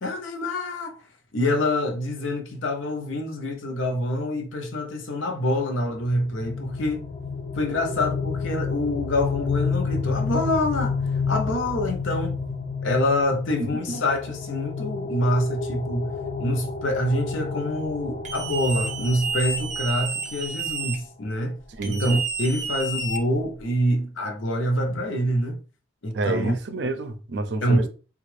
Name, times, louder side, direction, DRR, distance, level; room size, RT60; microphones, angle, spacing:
voice 1, 0.0-1.0 1.3-7.1 7.6-11.0 11.3-12.4 12.8-16.1 16.4-25.6 26.0-26.6 27.6-27.9, left 1 dB, 80° left, 0.7 m, -26 dB
sound 1, 6.0-20.7, left 4 dB, 35° left, 0.3 m, -30 dB
sound 2, 18.3-21.0 21.8-23.6, right 4 dB, 40° right, 0.9 m, -30 dB
voice 2, 21.7-22.1 26.1-27.9, right 2 dB, 60° right, 0.5 m, -28 dB
3.4 x 2.4 x 3.2 m
head